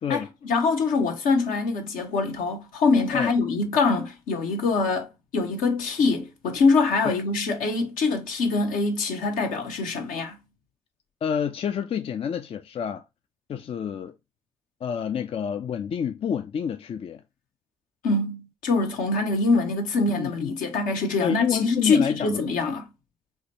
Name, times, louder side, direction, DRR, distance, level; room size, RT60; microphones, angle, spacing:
voice 1, 0.1-10.4 18.0-22.9, left 3 dB, 70° left, 0.9 m, -24 dB
voice 2, 11.2-13.0 13.5-14.2 14.8-17.2 20.2-20.5 21.2-22.4, left 8 dB, 40° left, 0.4 m, -28 dB
4.8 x 2.2 x 2.8 m
hypercardioid pair, 45°, 14 cm